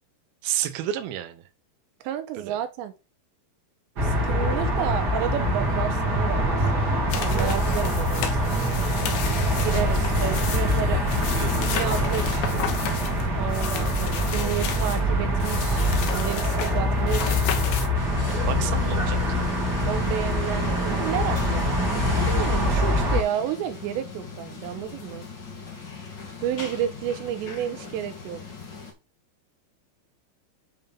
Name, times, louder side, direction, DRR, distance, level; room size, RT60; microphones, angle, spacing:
voice 1, 0.4-1.4 2.5-2.6 10.2-12.1 18.3-19.5, right 11 dB, 70° right, 2.6 m, -32 dB
voice 2, 2.0-2.9 4.0-6.9 7.2-8.5 9.6-11.0 11.6-12.5 13.4-17.5 19.9-25.3 26.4-28.4, right 10 dB, 85° right, 2.9 m, -31 dB
sound 1, 4.0-23.2, equal, 35° right, 1.7 m, -24 dB
sound 2, 7.1-15.0 15.4-17.9, left 9 dB, 70° left, 2.7 m, -34 dB
sound 3, 17.9-28.9, left 3 dB, 40° left, 1.7 m, -35 dB
9.2 x 3.7 x 5.4 m
omnidirectional pair, 5.1 m